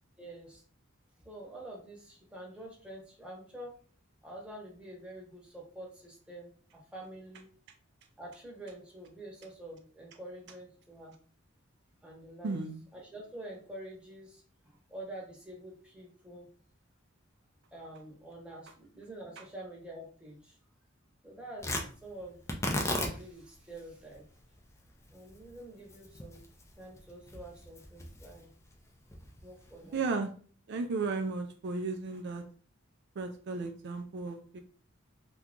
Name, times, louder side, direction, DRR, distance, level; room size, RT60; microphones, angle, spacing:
voice 1, 0.2-0.6 1.2-3.7 4.2-7.5 8.2-11.1 12.0-12.6 12.9-16.5 17.7-20.6 21.2-22.4 22.7-24.2 25.1-26.4 26.7-28.5 29.4-30.0, right 1 dB, 5° right, -3 dB, 1.0 m, -47 dB
voice 2, 12.4-12.8 29.9-30.3 30.7-32.4 33.2-34.6, right 3 dB, 60° right, 5 dB, 0.4 m, -34 dB
Tearing, 21.6-29.9, left 1 dB, 15° left, 0.5 m, -39 dB
2.9 x 2.3 x 3.6 m, 0.43 s
head